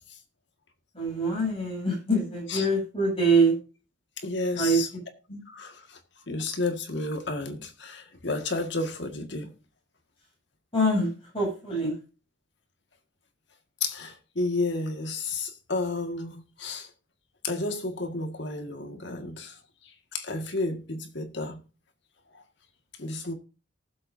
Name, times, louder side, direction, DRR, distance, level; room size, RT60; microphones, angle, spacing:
voice 1, 0.9-3.5 4.5-4.8 10.7-11.1 11.3-11.9, right 2 dB, 30° left, 7.9 m, -24 dB
voice 2, 4.2-4.9 5.3-6.0 6.3-9.5 13.8-16.9 17.4-19.5 20.1-21.6 23.0-23.3, left 3 dB, 65° left, 1.9 m, -31 dB
19.0 x 7.7 x 2.7 m
head